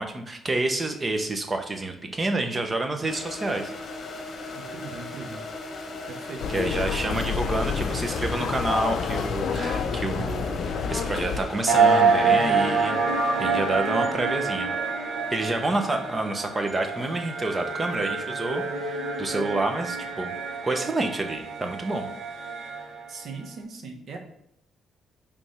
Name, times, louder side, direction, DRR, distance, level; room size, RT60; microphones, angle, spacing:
voice 1, 0.0-3.7 6.5-13.0 13.4-14.7 15.3-20.3 20.6-22.1, right 2 dB, 25° right, 5 dB, 1.0 m, -28 dB
sound 1, 3.1-19.9, left 2 dB, 45° left, 1.3 m, -39 dB
voice 2, 4.5-5.4 6.1-6.6 15.7-15.8 23.1-24.2, right 4 dB, 65° right, 2 dB, 1.2 m, -39 dB
sound 2, 6.4-11.4, left 6 dB, 70° left, 0.6 m, -29 dB
sound 3, 11.7-23.1, right 4 dB, 85° right, 1.4 m, -26 dB
5.2 x 3.5 x 5.7 m, 0.75 s
cardioid pair, 90°, 0 cm